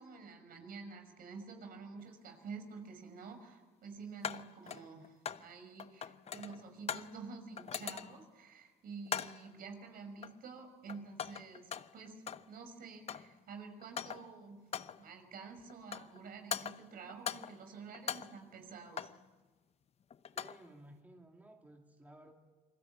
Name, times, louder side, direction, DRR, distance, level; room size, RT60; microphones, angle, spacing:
voice 1, 0.0-14.7 15.0-19.1, right 4 dB, 60° right, 6 dB, 5.9 m, -49 dB
sound 1, 2.0-2.1 4.2-5.5 5.8-7.2 7.6-8.3 9.1-9.5 10.2-10.6 10.9-12.5 12.8-13.4 13.8-14.4 14.7-15.1 15.7-16.2 16.5-17.6 17.9-19.2 20.1-20.7, left 8 dB, 40° left, 0.8 m, -42 dB
voice 2, 20.3-22.3, right 1 dB, 10° right, 1 dB, 2.7 m, -56 dB
28.5 x 22.0 x 8.7 m, 1.3 s
cardioid pair, 110°, 17 cm